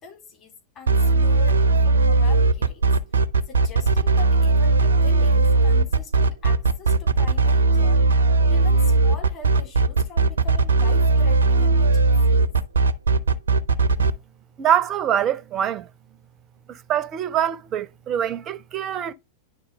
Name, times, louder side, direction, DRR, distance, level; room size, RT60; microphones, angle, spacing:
voice 1, 0.0-2.8 3.5-8.0 8.5-12.5, left 4 dB, 30° left, 3.9 m, -41 dB
sound 1, 0.9-14.1, right 3 dB, 70° right, 0.6 m, -18 dB
voice 2, 14.6-15.9 16.7-19.1, right 9 dB, 30° right, 0.6 m, -24 dB
10.0 x 4.1 x 3.4 m
figure-of-eight pair, 90°, 0 cm